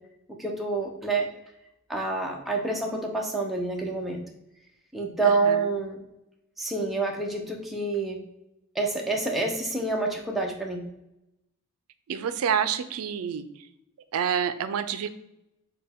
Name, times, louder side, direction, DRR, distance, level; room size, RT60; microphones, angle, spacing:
voice 1, 0.4-1.3 1.9-4.2 4.9-6.0 6.6-8.2 8.7-10.8, right 3 dB, ahead, 0 dB, 0.5 m, -27 dB
voice 2, 5.2-5.7 12.1-13.5 14.1-15.1, right 8 dB, 85° right, 11 dB, 0.4 m, -28 dB
6.5 x 2.2 x 3.4 m, 0.87 s
head